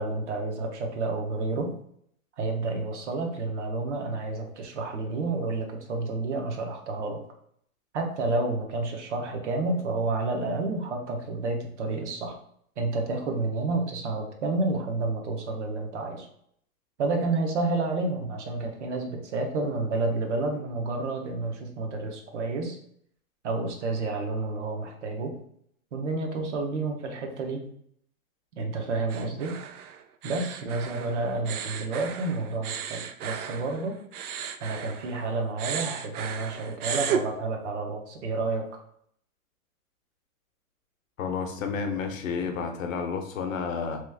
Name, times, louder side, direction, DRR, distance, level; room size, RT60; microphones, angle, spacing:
voice 1, 0.0-1.7 2.4-7.2 7.9-12.4 12.8-16.3 17.0-22.8 23.4-25.3 25.9-27.6 28.6-29.6 30.2-34.0 34.6-38.6, right 3 dB, 55° right, 3 dB, 0.8 m, -30 dB
sound 1, 29.1-35.3 35.6-37.2, right 8 dB, 90° right, 0.5 m, -34 dB
voice 2, 41.2-44.0, left 5 dB, 60° left, 5 dB, 0.7 m, -31 dB
3.0 x 2.3 x 3.3 m, 0.67 s
hypercardioid pair, 155°, 44 cm